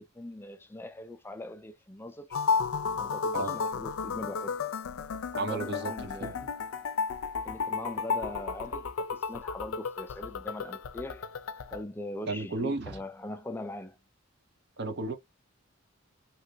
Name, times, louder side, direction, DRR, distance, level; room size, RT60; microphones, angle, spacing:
voice 1, 0.0-2.4 3.0-4.6 5.3-6.4 7.4-11.3 11.7-14.0, left 1 dB, 10° left, 0.3 m, -41 dB
sound 1, 2.3-11.8, left 5 dB, 85° left, 0.4 m, -33 dB
voice 2, 5.3-6.5 12.3-13.0 14.8-15.1, right 3 dB, 55° right, 0.7 m, -34 dB
3.2 x 2.9 x 2.6 m
head